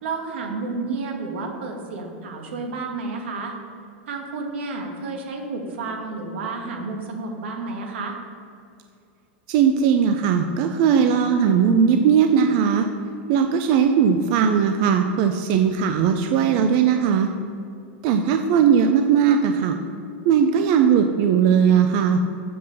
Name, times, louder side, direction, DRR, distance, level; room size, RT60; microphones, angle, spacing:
voice 1, 0.0-3.5 4.1-8.2, right 3 dB, 85° right, 2 dB, 1.8 m, -31 dB
voice 2, 9.5-12.9 13.3-17.3 18.0-19.8 20.2-22.2, right 7 dB, 40° right, 6 dB, 0.5 m, -18 dB
7.7 x 5.6 x 6.5 m, 2.4 s
supercardioid pair, 170°, 6 cm